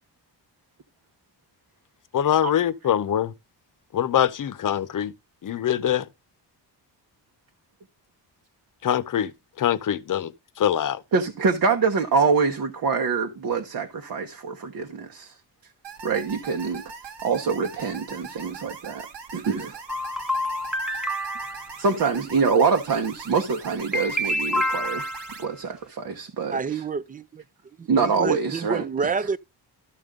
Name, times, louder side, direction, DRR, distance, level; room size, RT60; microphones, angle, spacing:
voice 1, 2.1-3.3 3.9-5.1 5.4-6.0 8.8-9.3 9.6-10.3 10.6-11.0, left 10 dB, 50° left, 0.8 m, -23 dB
voice 2, 11.1-15.3 16.0-16.8 17.2-19.1 19.3-19.8 21.8-25.1 25.4-26.8 27.9-29.1, right 5 dB, 55° right, 1.2 m, -25 dB
sound 1, 15.8-25.4, right 5 dB, 85° right, 1.9 m, -41 dB
sound 2, 19.9-21.7 23.9-25.4, left 1 dB, ahead, 0.8 m, -28 dB
voice 3, 26.5-27.4 27.8-29.4, right 5 dB, 20° right, 0.4 m, -28 dB
13.5 x 5.2 x 3.7 m
wide cardioid pair, 155°, 41 cm